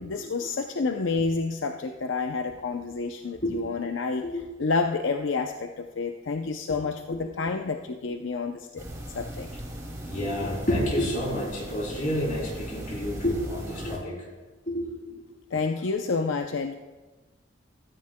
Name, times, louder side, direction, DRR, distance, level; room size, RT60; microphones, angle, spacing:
voice 1, 0.0-4.2 4.6-8.8 9.1-9.5 15.5-16.7, left 4 dB, 80° left, 5 dB, 0.6 m, -29 dB
sound 1, 8.8-14.0, equal, 15° right, 2.3 m, -38 dB
voice 2, 10.0-14.2 14.7-15.2, equal, 45° left, -2 dB, 3.4 m, -29 dB
16.0 x 14.5 x 2.2 m, 1.2 s
head